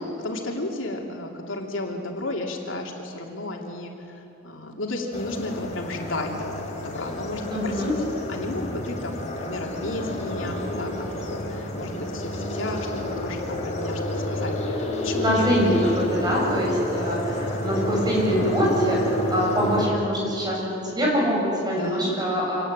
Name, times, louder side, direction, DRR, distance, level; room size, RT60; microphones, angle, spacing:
voice 1, 0.2-3.9 4.4-7.8 8.3-15.5 21.7-22.4, left 2 dB, 85° left, 1 dB, 3.0 m, -33 dB
sound 1, 5.1-19.9, left 1 dB, 35° left, 4.0 m, -29 dB
voice 2, 7.5-7.9 15.2-22.6, equal, 20° right, -3 dB, 7.5 m, -24 dB
26.0 x 18.5 x 9.0 m, 2.9 s
head